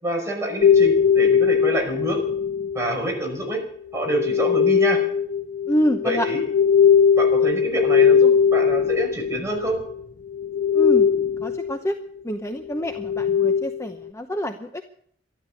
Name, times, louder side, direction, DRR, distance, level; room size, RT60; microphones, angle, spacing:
voice 1, 0.0-2.2 2.7-3.6 3.9-5.0 6.0-6.4 7.2-9.8, right 1 dB, 15° right, 0 dB, 5.4 m, -27 dB
sound 1, 0.6-3.0 4.0-10.0 10.3-11.8 12.7-13.8, left 7 dB, 85° left, 0.8 m, -19 dB
voice 2, 5.7-6.3 10.7-11.1 11.4-11.9 12.2-14.8, equal, 15° left, 6 dB, 0.8 m, -26 dB
13.0 x 12.5 x 8.4 m, 0.65 s
head